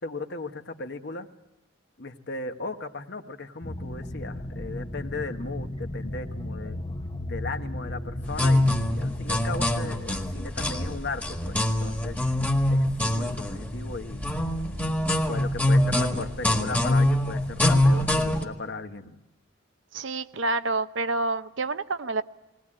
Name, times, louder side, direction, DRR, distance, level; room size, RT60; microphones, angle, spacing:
voice 1, 0.0-1.3 2.0-6.8 7.3-12.2 12.7-14.2 14.8-19.2, left 3 dB, 60° left, 7 dB, 1.3 m, -37 dB
sound 1, 3.6-9.7, left 1 dB, 25° left, 0.9 m, -35 dB
sound 2, 8.3-18.4, left 1 dB, 10° left, 1.7 m, -24 dB
voice 2, 19.9-22.2, right 3 dB, 70° right, 11 dB, 0.8 m, -28 dB
20.5 x 19.5 x 8.8 m, 1.0 s
head